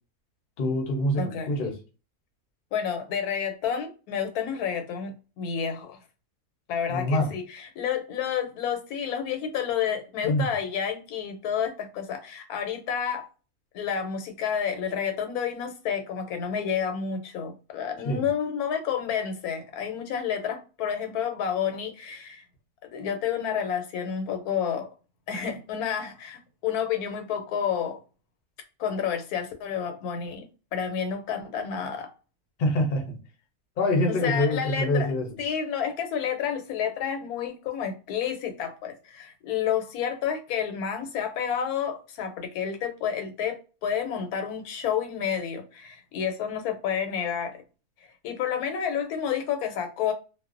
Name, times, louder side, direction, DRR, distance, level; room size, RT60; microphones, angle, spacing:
voice 1, 0.6-1.8 6.9-7.3 10.2-10.5 18.0-18.3 32.6-33.2 33.8-35.3, left 1 dB, 50° left, 0.6 m, -25 dB
voice 2, 1.2-1.6 2.7-6.0 6.7-13.3 13.7-22.4 22.8-24.9 25.3-28.0 28.8-30.4 30.7-32.1 34.1-35.1 35.4-47.6 48.2-50.1, left 8 dB, 90° left, 1.1 m, -30 dB
2.4 x 2.1 x 2.4 m
omnidirectional pair, 1.5 m